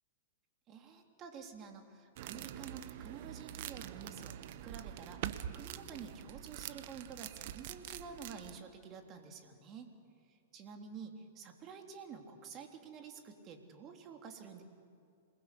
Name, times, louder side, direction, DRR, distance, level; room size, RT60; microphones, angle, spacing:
voice 1, 0.7-9.9 10.3-14.6, right 6 dB, 35° right, 4 dB, 3.4 m, -50 dB
sound 1, 2.2-8.6, right 11 dB, 55° right, 1.1 m, -45 dB
27.0 x 20.5 x 8.6 m, 2.4 s
hypercardioid pair, 105°, 0 cm